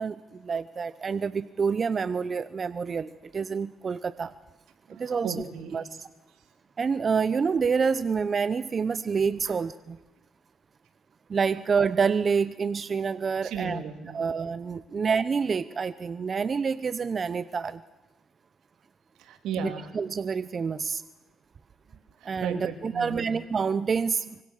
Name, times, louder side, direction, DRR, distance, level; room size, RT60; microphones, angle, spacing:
voice 1, 0.0-4.3 4.9-5.3 5.7-6.1 6.8-10.0 11.3-13.8 14.1-17.8 19.9-21.0 22.2-24.3, right 5 dB, 40° right, 14 dB, 0.8 m, -27 dB
voice 2, 4.9-5.7 9.4-9.6 13.4-14.2 19.2-19.9 21.9-23.3, right 6 dB, 85° right, 6 dB, 3.4 m, -36 dB
26.0 x 24.0 x 6.6 m, 1.1 s
cardioid pair, 90°, 0 cm